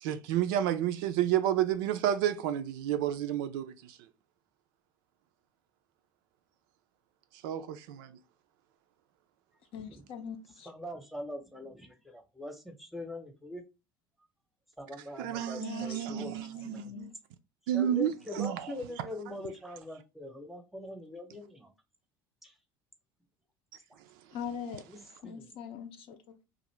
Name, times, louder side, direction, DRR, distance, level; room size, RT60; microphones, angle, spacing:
voice 1, 0.0-4.0 7.4-8.1 15.2-17.1 17.7-18.6, right 11 dB, 60° right, 0.4 m, -30 dB
voice 2, 9.7-10.7 15.6-16.4 16.7-17.1 24.3-24.8 25.2-26.4, left 8 dB, 50° left, 0.5 m, -42 dB
voice 3, 10.5-13.6 14.8-16.4 16.7-16.9 17.7-21.7 22.4-22.5 24.9-25.5, left 1 dB, ahead, 0.8 m, -43 dB
2.6 x 2.5 x 3.1 m
figure-of-eight pair, 65°, 12 cm